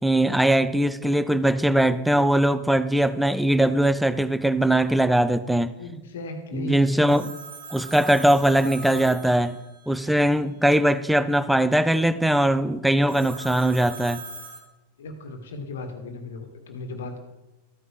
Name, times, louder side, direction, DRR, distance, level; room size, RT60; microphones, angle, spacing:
voice 1, 0.0-5.7 6.5-7.3 7.7-9.6 9.9-14.2, right 1 dB, ahead, 13 dB, 0.5 m, -21 dB
voice 2, 5.8-7.2 15.0-17.2, left 2 dB, 60° left, 5 dB, 1.7 m, -36 dB
Telephone, 7.1-10.2 13.1-14.6, right 3 dB, 70° right, 2.1 m, -40 dB
14.0 x 9.2 x 3.3 m, 1.0 s
figure-of-eight pair, 90°, 0 cm